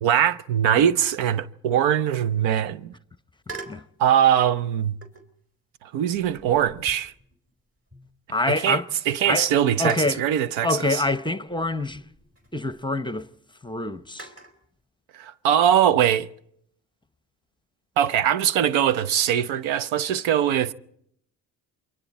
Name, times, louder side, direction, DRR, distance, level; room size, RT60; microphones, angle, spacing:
voice 1, 0.0-2.9 4.0-5.0 5.8-7.1 8.6-8.8 9.1-11.0 15.1-16.3 18.0-20.7, right 10 dB, 80° right, 0.7 m, -21 dB
sound 1, 3.4-3.9 5.0-5.4 6.1-8.4 8.8-8.9 9.9-10.3 11.5-12.8 14.2-14.6, right 3 dB, 30° right, 3.7 m, -44 dB
voice 2, 3.5-3.8 8.3-8.9 9.3-9.5 9.8-10.2 10.6-12.0 12.5-13.3 13.6-14.3, left 2 dB, 10° left, 0.8 m, -26 dB
28.5 x 23.0 x 4.2 m
supercardioid pair, 50°, 46 cm